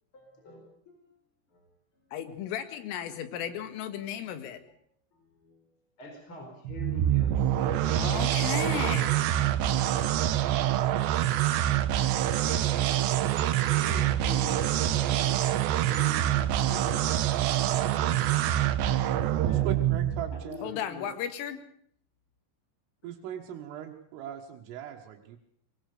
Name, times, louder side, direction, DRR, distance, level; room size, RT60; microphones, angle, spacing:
voice 1, 0.1-1.2 1.5-1.7 4.2-4.3 5.1-5.6 6.0-8.2 9.6-9.9 10.5-10.8 11.1-11.4 12.3-12.9 13.6-17.3 17.7-18.9 19.4-19.8 20.3-21.1, left 2 dB, 25° left, 2 dB, 4.7 m, -45 dB
voice 2, 2.1-4.7 8.0-9.3 20.6-21.6, left 9 dB, 85° left, 10 dB, 4.4 m, -35 dB
sound 1, 6.7-20.4, right 12 dB, 70° right, 3.1 m, -26 dB
voice 3, 19.5-20.7 23.0-25.4, right 9 dB, 90° right, 0 dB, 4.2 m, -39 dB
24.0 x 20.0 x 6.8 m, 0.65 s
omnidirectional pair, 5.7 m